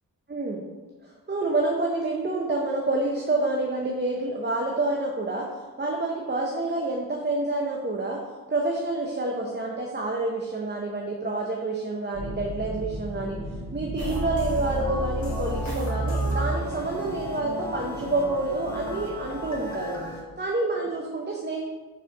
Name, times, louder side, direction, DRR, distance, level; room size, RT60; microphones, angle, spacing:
voice 1, 0.3-0.6 1.0-5.5 5.8-8.2 8.5-13.4 13.7-20.0 20.4-21.6, right 2 dB, 30° right, -1 dB, 0.7 m, -28 dB
sound 1, 12.1-20.2, equal, 45° right, 2.0 m, -39 dB
sound 2, 14.0-20.2, equal, 50° left, 1.4 m, -31 dB
4.9 x 4.1 x 5.8 m, 1.3 s
wide cardioid pair, 95°, 36 cm